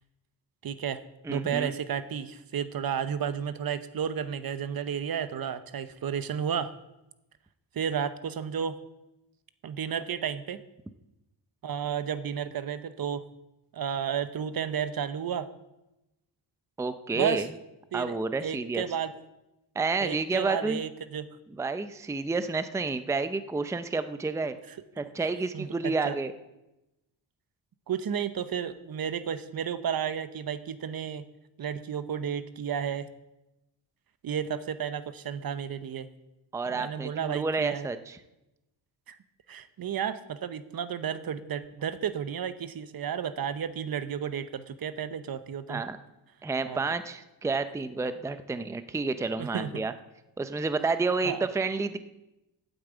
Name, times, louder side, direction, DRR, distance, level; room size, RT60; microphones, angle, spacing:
voice 1, 0.6-1.0 1.3-6.7 7.7-8.8 9.6-10.6 11.6-13.2 13.7-15.5 17.1-17.5 17.9-19.1 20.0-21.3 25.2-26.2 27.9-31.2 31.6-33.1 34.2-36.1 36.7-37.9 39.1-39.2 39.5-45.8 46.6-46.8 49.4-49.7 51.2-51.5, right 8 dB, 50° right, 13 dB, 0.9 m, -32 dB
voice 2, 1.2-1.7 16.8-17.5 17.9-18.8 19.8-20.8 21.5-24.6 25.0-26.3 36.5-38.2 45.7-46.0 46.4-49.9 50.4-52.0, right 3 dB, 5° right, 11 dB, 0.5 m, -30 dB
9.1 x 8.6 x 8.1 m, 0.95 s
wide cardioid pair, 130°, 45 cm